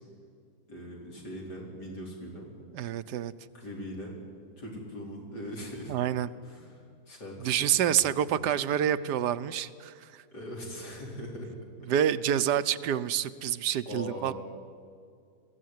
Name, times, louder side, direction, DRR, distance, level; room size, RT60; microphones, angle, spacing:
voice 1, 0.7-2.5 3.5-4.1 4.6-6.0 6.4-8.0 8.3-8.4 10.3-11.5 13.8-14.3, equal, 85° left, -1 dB, 4.9 m, -41 dB
voice 2, 2.7-3.3 5.9-6.3 7.4-10.2 11.9-14.3, right 10 dB, 80° right, 13 dB, 1.3 m, -28 dB
21.5 x 15.0 x 9.4 m, 2.2 s
omnidirectional pair, 1.8 m